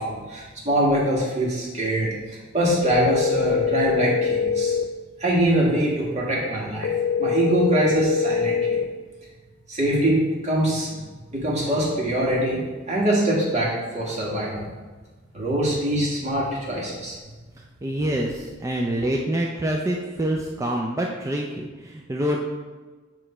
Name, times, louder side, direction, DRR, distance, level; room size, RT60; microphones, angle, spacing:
voice 1, 0.0-4.8 5.2-6.9 7.2-8.8 9.7-10.9 11.3-14.7 15.3-17.2, right 1 dB, 35° right, -5 dB, 1.7 m, -23 dB
sound 1, 2.8-4.8 6.8-8.8, left 6 dB, 65° left, 0.3 m, -23 dB
voice 2, 17.8-22.6, right 1 dB, 15° right, -1 dB, 0.4 m, -26 dB
7.8 x 3.1 x 4.3 m, 1.3 s
head